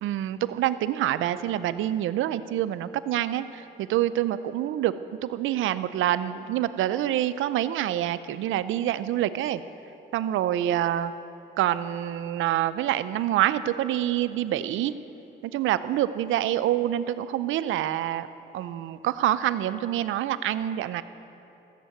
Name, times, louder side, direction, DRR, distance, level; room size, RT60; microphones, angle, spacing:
voice 1, 0.0-4.9 5.2-9.6 10.1-11.1 11.6-14.9 15.4-18.3 18.5-21.0, right 12 dB, 80° right, 14 dB, 0.6 m, -26 dB
15.0 x 8.1 x 7.7 m, 2.9 s
cardioid pair, 90°, 20 cm